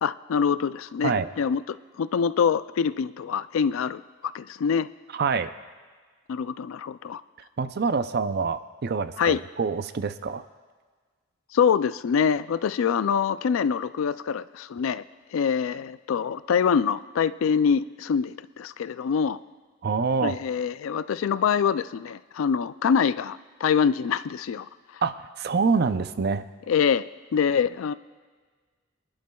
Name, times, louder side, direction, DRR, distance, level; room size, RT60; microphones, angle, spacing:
voice 1, 0.0-4.9 6.3-7.2 9.2-9.4 11.5-15.0 15.3-19.4 20.2-24.7 24.9-25.0 26.7-27.9, left 7 dB, 90° left, 15 dB, 0.3 m, -25 dB
voice 2, 5.1-5.5 7.6-10.4 19.8-20.4 25.0-26.4, right 5 dB, 55° right, 11 dB, 0.5 m, -26 dB
24.5 x 11.0 x 2.3 m, 1.5 s
head